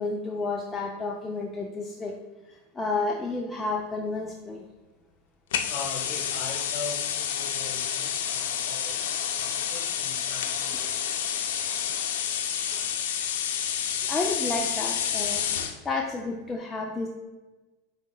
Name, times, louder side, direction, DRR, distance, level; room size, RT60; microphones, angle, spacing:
voice 1, 0.0-2.2 2.5-4.7 12.5-12.9 14.1-15.4 15.8-17.1, left 3 dB, 15° left, 0 dB, 0.4 m, -31 dB
sound 1, 5.5-15.8, left 9 dB, 80° left, 0.4 m, -29 dB
voice 2, 5.7-11.1, left 3 dB, 45° left, 0 dB, 1.4 m, -41 dB
5.0 x 4.1 x 2.3 m, 1.2 s
hypercardioid pair, 110°, 0 cm